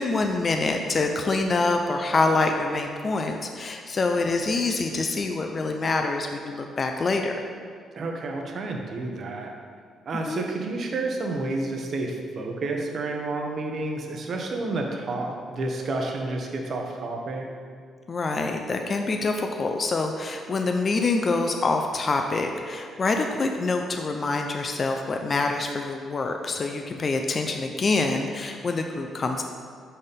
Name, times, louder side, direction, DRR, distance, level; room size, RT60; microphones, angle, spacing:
voice 1, 0.0-7.3 10.3-10.5 18.1-29.4, left 3 dB, 40° left, 4 dB, 0.5 m, -26 dB
voice 2, 8.0-9.5 10.1-17.4, right 2 dB, 55° right, 1 dB, 0.8 m, -30 dB
5.6 x 4.2 x 5.1 m, 2.1 s
cardioid pair, 90°, 0 cm